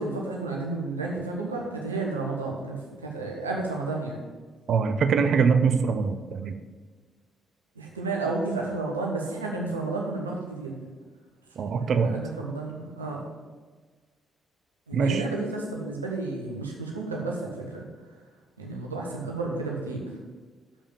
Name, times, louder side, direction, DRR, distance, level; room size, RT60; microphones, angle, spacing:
voice 1, 0.0-4.2 7.7-10.8 11.8-13.2 14.9-17.8 18.6-20.0, right 3 dB, 85° right, -1 dB, 1.3 m, -32 dB
voice 2, 4.7-6.6 11.6-12.1 14.9-15.2, right 5 dB, 55° right, 9 dB, 0.7 m, -23 dB
7.3 x 5.3 x 7.2 m, 1.4 s
figure-of-eight pair, 40°, 0 cm